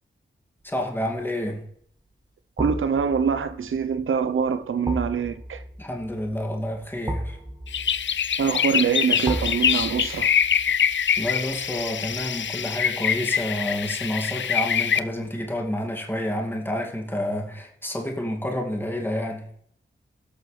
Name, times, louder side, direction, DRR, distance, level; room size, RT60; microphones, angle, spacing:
voice 1, 0.6-1.7 5.8-7.4 11.2-19.5, left 1 dB, 10° left, 2.2 m, -29 dB
sound 1, 0.8-1.2 2.6-13.6 13.9-14.0, equal, 20° right, 1.8 m, -36 dB
voice 2, 2.6-5.6 8.4-10.3, right 6 dB, 80° right, 0.7 m, -24 dB
sound 2, 7.7-15.0, left 8 dB, 65° left, 0.5 m, -24 dB
16.5 x 6.4 x 3.2 m
cardioid pair, 45°, 21 cm